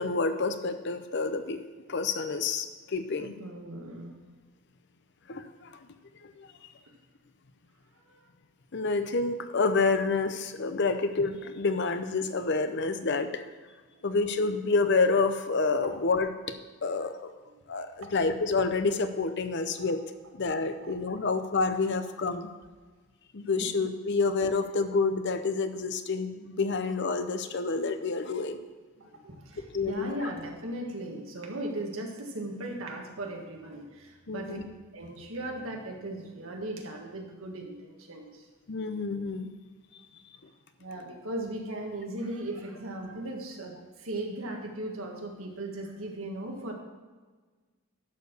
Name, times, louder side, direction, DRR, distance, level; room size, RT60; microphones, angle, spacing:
voice 1, 0.0-1.6 1.9-3.3 5.3-5.8 6.2-6.5 8.7-13.4 14.0-16.5 16.8-17.3 17.7-20.0 20.4-22.5 23.3-28.6 29.7-30.3 34.3-34.7 38.7-39.5, left 4 dB, 50° left, 9 dB, 0.6 m, -28 dB
voice 2, 3.2-4.3 8.0-8.2 13.9-14.2 15.8-16.0 16.8-17.0 17.5-17.6 17.9-18.1 19.8-19.9 20.8-20.9 29.0-34.6 34.9-38.5 40.8-46.7, right 1 dB, 70° right, 1 dB, 1.6 m, -38 dB
11.5 x 4.6 x 6.8 m, 1.4 s
head